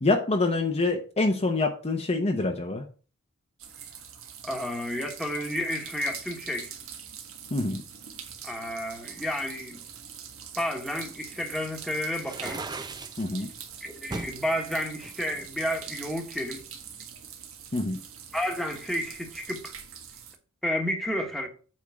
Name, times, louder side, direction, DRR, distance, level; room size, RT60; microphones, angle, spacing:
voice 1, 0.0-2.8 7.5-7.8 13.2-13.5 17.7-18.0, left 2 dB, 30° left, 0.8 m, -26 dB
sound 1, 3.6-20.4, right 8 dB, 65° right, 1.5 m, -44 dB
voice 2, 4.4-6.7 8.4-9.8 10.5-12.6 13.8-16.6 18.3-19.7 20.6-21.5, equal, ahead, 1.4 m, -31 dB
sound 2, 12.2-13.3 14.1-14.4 15.0-16.1, right 3 dB, 20° right, 0.6 m, -37 dB
8.5 x 3.7 x 6.2 m
head